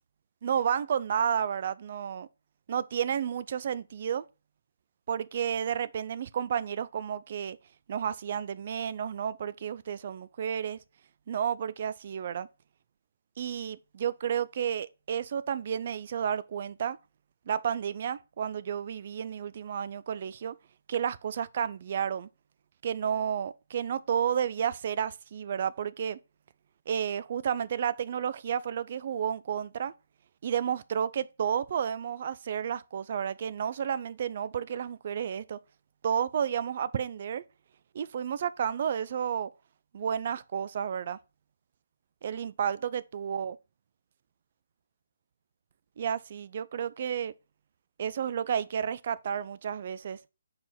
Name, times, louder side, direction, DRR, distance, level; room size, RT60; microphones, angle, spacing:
voice 1, 0.4-2.3 2.7-4.2 5.1-7.6 7.9-10.8 11.3-12.5 13.4-17.0 17.5-20.5 20.9-22.3 22.8-26.2 26.9-29.9 30.4-35.6 36.0-37.4 37.9-39.5 39.9-41.2 42.2-43.6 46.0-47.3 48.0-50.2, right 8 dB, 45° right, 0.4 m, -31 dB
5.4 x 4.3 x 5.8 m
figure-of-eight pair, 145°, 0 cm